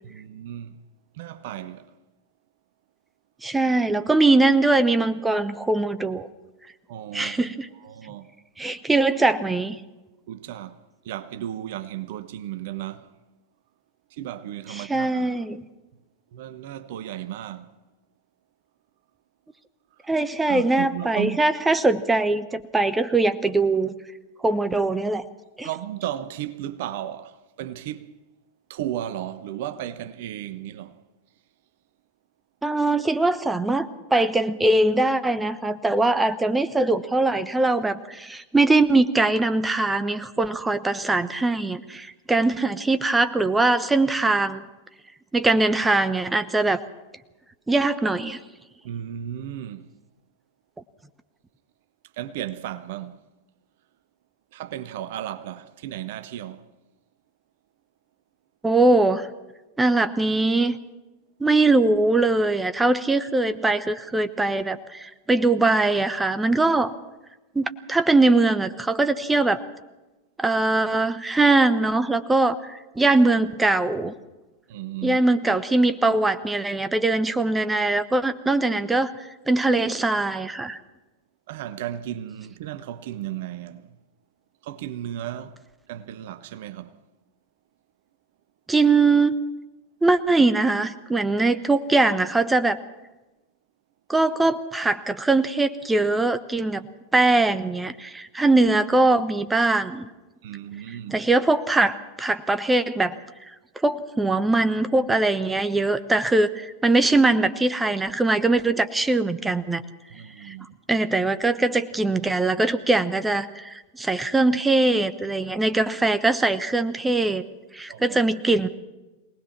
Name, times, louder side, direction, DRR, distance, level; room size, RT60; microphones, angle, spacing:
voice 1, 0.0-0.8 1.2-1.9 6.9-7.5 7.8-8.3 10.3-13.1 14.1-15.4 16.3-17.7 20.5-21.4 25.6-28.1 28.7-31.0 48.8-49.9 52.2-53.2 54.5-56.6 74.7-75.2 81.5-83.9 84.6-85.6 85.9-87.0 100.4-101.2 110.1-110.8 117.9-118.2, right 12 dB, 50° right, 1.0 m, -34 dB
voice 2, 3.4-6.3 7.1-7.7 8.6-9.8 14.7-15.6 20.1-23.9 24.4-25.2 25.6-25.7 32.6-44.6 45.3-46.8 47.7-48.4 58.6-59.3 59.8-60.8 61.4-66.9 67.5-69.6 70.4-74.1 75.0-79.1 79.5-80.8 88.7-89.3 90.0-92.8 94.1-96.8 97.1-100.1 101.1-103.1 103.8-109.8 110.4-110.5 110.9-117.4 117.7-118.7, right 2 dB, 10° right, 1.1 m, -21 dB
24.0 x 19.0 x 6.0 m
figure-of-eight pair, 90°, 0 cm